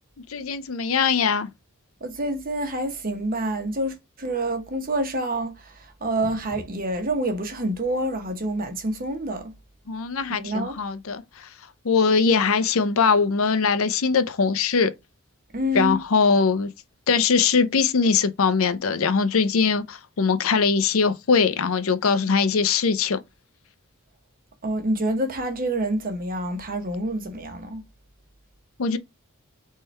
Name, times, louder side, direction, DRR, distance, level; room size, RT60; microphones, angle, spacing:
voice 1, 0.3-1.5 9.9-11.2 11.8-14.9 15.7-16.7 17.1-23.2 28.8-29.0, left 5 dB, 70° left, 0.6 m, -21 dB
voice 2, 2.0-9.5 10.3-10.8 15.5-16.0 24.6-27.8, right 1 dB, 40° right, 1.0 m, -27 dB
4.1 x 3.7 x 3.2 m
head